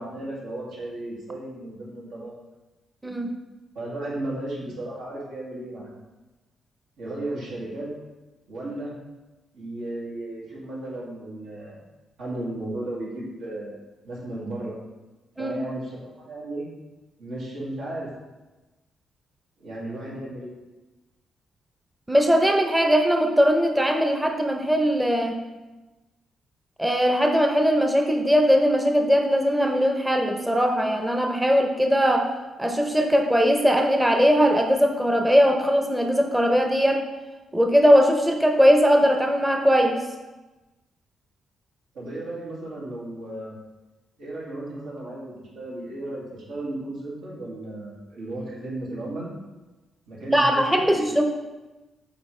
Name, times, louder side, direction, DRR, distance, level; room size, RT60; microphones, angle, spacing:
voice 1, 0.0-2.4 3.7-5.9 7.0-7.9 8.5-8.9 9.5-11.8 12.2-13.7 14.0-14.8 15.4-16.7 17.2-18.1 19.6-20.5 41.9-43.6 44.2-49.3 50.1-51.1, right 1 dB, 90° right, -6 dB, 2.2 m, -34 dB
voice 2, 22.1-25.4 26.8-32.3 32.6-37.0 37.5-40.0 50.3-51.2, equal, 10° right, 3 dB, 0.6 m, -20 dB
7.9 x 4.2 x 3.2 m, 1.1 s
cardioid pair, 105°, 0 cm